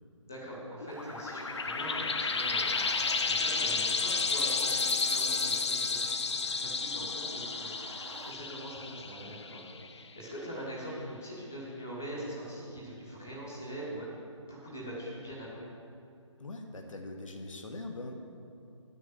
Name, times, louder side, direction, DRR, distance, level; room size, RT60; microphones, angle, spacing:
voice 1, 0.2-15.7, right 1 dB, 5° left, -6 dB, 0.4 m, -43 dB
sound 1, 0.8-10.0, left 4 dB, 60° left, 0.6 m, -32 dB
Car, 0.9-8.3, right 3 dB, 70° right, 0.9 m, -48 dB
voice 2, 16.4-18.1, left 2 dB, 85° left, 2 dB, 1.4 m, -42 dB
9.0 x 6.2 x 7.4 m, 2.6 s
hypercardioid pair, 175°, 16 cm